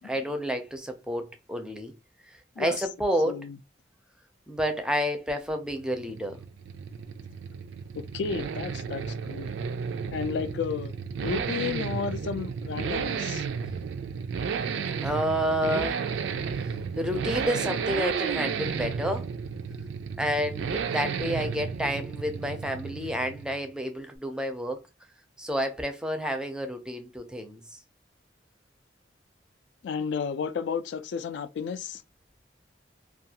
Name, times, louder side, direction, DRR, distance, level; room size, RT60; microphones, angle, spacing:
voice 1, 0.0-1.9 2.6-3.4 4.5-6.4 14.9-16.0 17.0-19.3 20.2-24.8 25.4-27.6, equal, 5° right, 0.4 m, -30 dB
voice 2, 3.3-3.6 8.0-9.5 10.1-10.9 11.2-13.5 29.8-32.0, left 6 dB, 75° left, 0.3 m, -32 dB
sound 1, 5.7-23.7, right 6 dB, 80° right, 0.3 m, -33 dB
2.4 x 2.3 x 2.7 m
head